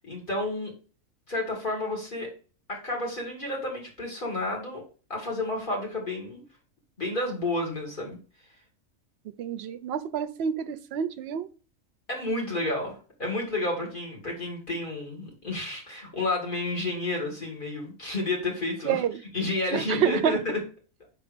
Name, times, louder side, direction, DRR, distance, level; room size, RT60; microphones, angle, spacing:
voice 1, 0.0-0.7 1.3-2.3 2.7-4.8 5.1-6.4 7.0-8.2 12.1-19.0 19.3-20.6, left 2 dB, 35° left, -1 dB, 2.5 m, -31 dB
voice 2, 9.4-11.5 18.8-19.2 19.7-20.4, right 9 dB, 60° right, 12 dB, 0.7 m, -28 dB
5.4 x 4.0 x 5.1 m, 0.37 s
omnidirectional pair, 1.4 m